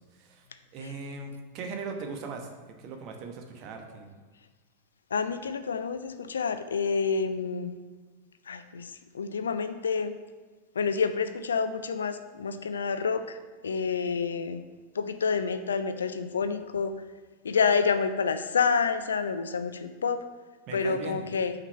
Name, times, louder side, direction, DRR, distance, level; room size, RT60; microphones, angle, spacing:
voice 1, 0.7-2.5 2.8-4.1 20.7-21.2, right 4 dB, 40° right, 3 dB, 1.1 m, -39 dB
voice 2, 5.1-7.7 8.5-8.9 9.1-10.1 10.8-13.4 13.6-14.6 15.0-16.9 17.4-20.2 20.7-21.5, left 5 dB, 70° left, 10 dB, 0.4 m, -28 dB
5.9 x 3.9 x 5.5 m, 1.4 s
figure-of-eight pair, 90°, 0 cm